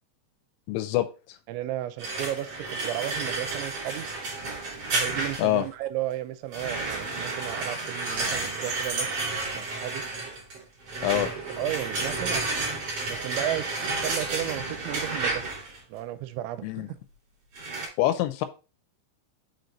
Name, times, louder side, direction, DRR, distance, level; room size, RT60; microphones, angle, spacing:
voice 1, 0.7-1.1 5.4-5.6 11.0-11.3 16.6-16.9 18.0-18.5, left 14 dB, 85° left, 2.8 m, -25 dB
voice 2, 1.5-4.1 4.9-9.3 9.5-10.0 11.6-12.4 13.1-15.5 15.9-17.0, right 13 dB, 85° right, 2.8 m, -34 dB
metal heavy drags, 2.0-5.7 6.5-15.8 17.6-17.9, right 3 dB, 40° right, 2.7 m, -31 dB
6.7 x 4.6 x 3.9 m
omnidirectional pair, 5.5 m